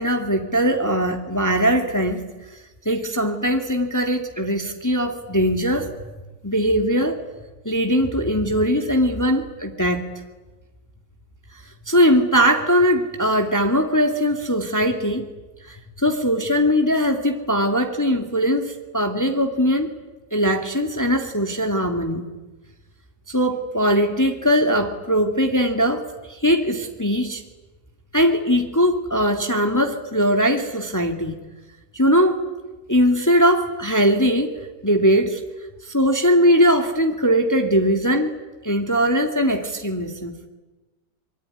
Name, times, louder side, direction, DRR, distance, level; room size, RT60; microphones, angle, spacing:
voice 1, 0.0-2.3 2.9-5.9 6.4-7.2 7.6-10.1 11.9-15.2 15.7-19.9 20.3-22.3 23.3-26.0 26.3-27.4 28.1-31.4 31.9-32.4 32.9-34.5 34.8-35.4 35.8-38.3 38.6-40.5, equal, 10° left, 4 dB, 2.1 m, -20 dB
25.0 x 23.5 x 9.9 m, 1.2 s
omnidirectional pair, 2.1 m